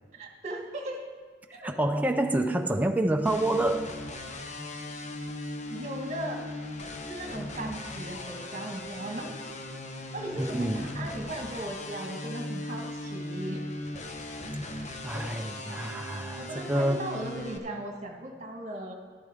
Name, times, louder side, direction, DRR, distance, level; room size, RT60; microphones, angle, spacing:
voice 1, 0.1-1.0 1.5-1.7 2.7-2.8 5.7-6.4 7.1-9.3 10.1-13.6 15.1-15.3 16.4-18.9, right 1 dB, 40° right, 2 dB, 1.6 m, -37 dB
voice 2, 1.6-3.9 10.3-11.0 15.0-17.0, right 1 dB, 10° right, 4 dB, 0.5 m, -28 dB
sound 1, 3.2-17.6, left 1 dB, 40° left, 0.9 m, -38 dB
12.0 x 12.0 x 3.6 m, 1.5 s
head